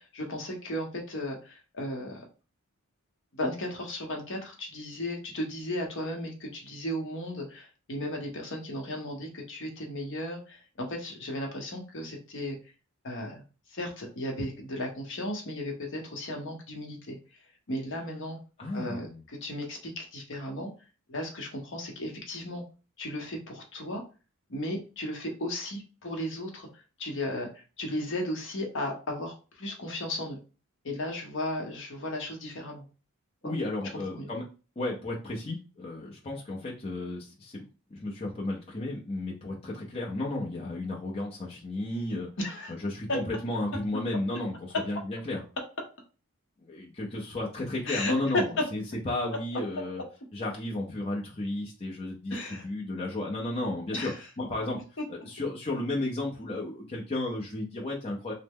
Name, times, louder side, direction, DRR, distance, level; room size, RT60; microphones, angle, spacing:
voice 1, 0.0-2.2 3.3-12.6 13.0-13.4 13.7-17.2 17.7-18.4 18.7-20.7 21.1-22.6 23.0-24.0 24.5-26.7 27.0-30.4 30.8-32.8 34.2-34.3 42.4-42.7 43.1-43.2 47.9-48.1 52.3-52.7 53.9-54.2, left 1 dB, 55° left, 2 dB, 0.8 m, -35 dB
voice 2, 18.6-19.2 33.4-34.4 34.8-37.6 37.9-42.3 42.7-45.4 46.6-50.0 50.3-54.1 54.4-54.8 55.1-58.3, left 2 dB, 25° left, -3 dB, 0.6 m, -33 dB
3.1 x 2.0 x 3.5 m, 0.34 s
head